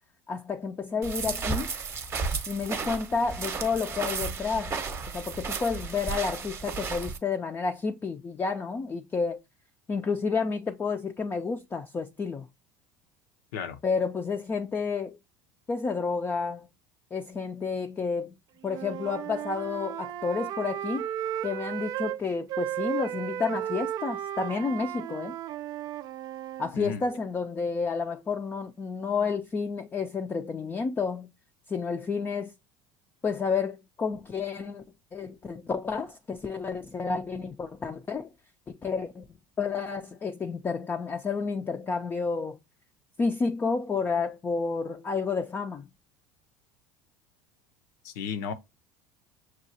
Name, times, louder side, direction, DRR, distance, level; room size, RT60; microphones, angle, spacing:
voice 1, 0.3-1.7 2.5-4.7 5.1-9.4 9.9-12.5 13.8-15.2 15.7-16.7 17.1-18.3 18.6-21.0 21.4-25.3 26.6-31.3 31.7-32.5 33.2-34.8 35.1-38.3 38.8-39.2 39.6-42.6 43.2-45.9, left 5 dB, 20° left, 0.4 m, -30 dB
sound 1, 1.0-7.2, right 4 dB, 25° right, 0.8 m, -33 dB
Wind instrument woodwind instrument, 18.6-22.2 22.5-26.7, right 11 dB, 50° right, 0.3 m, -34 dB
voice 2, 48.0-48.5, left 6 dB, 85° left, 0.7 m, -33 dB
6.3 x 2.4 x 2.7 m
supercardioid pair, 110°, 9 cm